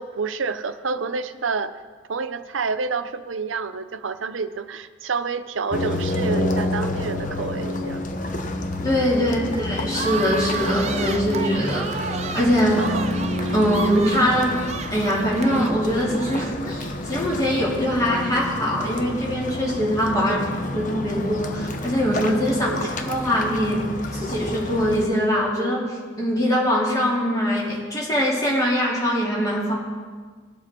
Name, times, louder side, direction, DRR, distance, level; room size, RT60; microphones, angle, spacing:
voice 1, 0.0-1.8 2.1-8.1 12.8-13.1 20.2-20.5 22.5-22.9, right 4 dB, 90° right, 11 dB, 0.7 m, -29 dB
sound 1, 5.7-25.1, left 1 dB, 40° left, 0.9 m, -29 dB
voice 2, 8.8-12.8 13.5-14.6 14.9-20.4 20.7-22.7 23.1-23.9 24.1-25.8 26.2-29.8, equal, 20° left, -5 dB, 2.9 m, -22 dB
sound 2, 9.9-16.8, right 5 dB, 35° right, 0.6 m, -32 dB
20.0 x 7.4 x 4.4 m, 1.5 s
head